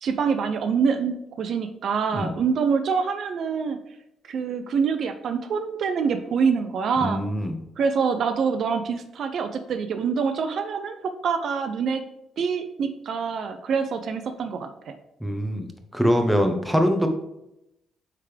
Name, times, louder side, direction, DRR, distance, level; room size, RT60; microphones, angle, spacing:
voice 1, 0.0-3.8 4.3-7.2 7.8-12.0 12.4-14.7, right 6 dB, 65° right, 8 dB, 0.5 m, -25 dB
voice 2, 7.0-7.5 15.2-17.1, equal, ahead, 5 dB, 1.0 m, -23 dB
9.1 x 3.6 x 3.4 m, 0.86 s
cardioid pair, 90°, 0 cm